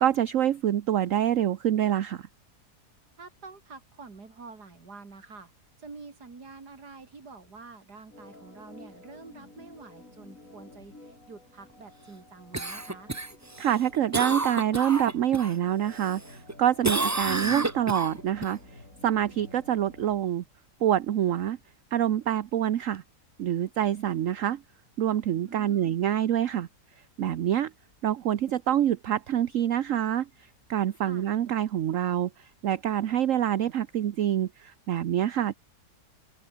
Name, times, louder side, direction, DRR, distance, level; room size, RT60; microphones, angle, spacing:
voice 1, 0.0-2.3 13.6-20.4 20.8-21.6 21.9-23.0 23.4-24.6 25.0-26.7 27.2-27.7 28.0-35.6, right 11 dB, 60° right, 1.1 m, -26 dB
voice 2, 3.2-5.5 5.8-13.1 25.4-26.0 31.0-31.3, right 4 dB, 80° right, 3.8 m, -47 dB
Organ, 8.1-20.2, left 2 dB, 50° left, 7.0 m, -51 dB
Cough, 12.5-15.5 15.9-16.5 16.8-18.5 22.9-23.0, right 2 dB, 15° right, 0.8 m, -30 dB
open air
omnidirectional pair, 1.7 m